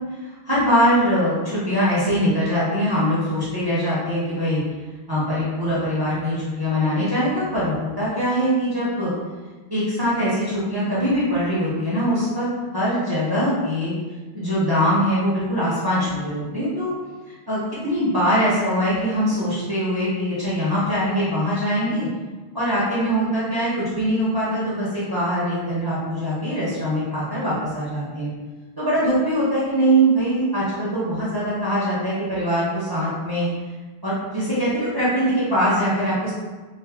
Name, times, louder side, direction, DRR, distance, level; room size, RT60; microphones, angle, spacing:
voice 1, 0.4-4.6 5.1-9.1 9.7-12.5 12.7-13.9 14.3-16.9 17.5-22.1 22.5-28.3 28.8-33.5 34.0-36.3, equal, 25° right, -9 dB, 0.7 m, -22 dB
3.3 x 2.1 x 3.3 m, 1.3 s
omnidirectional pair, 1.1 m